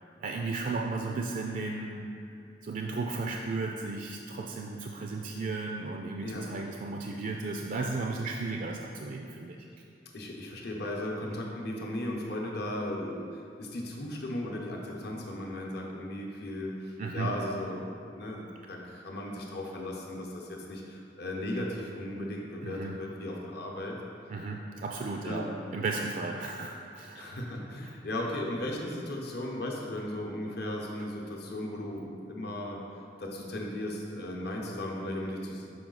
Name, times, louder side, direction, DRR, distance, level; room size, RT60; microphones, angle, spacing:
voice 1, 0.2-2.1 2.6-9.6 17.0-17.3 22.6-23.0 24.3-27.3, right 3 dB, 45° right, 1 dB, 0.3 m, -34 dB
voice 2, 10.1-18.4 18.7-24.0 25.2-25.5 27.1-32.8 33.2-35.7, left 1 dB, 60° left, -1 dB, 0.8 m, -36 dB
6.0 x 4.8 x 3.9 m, 2.6 s
head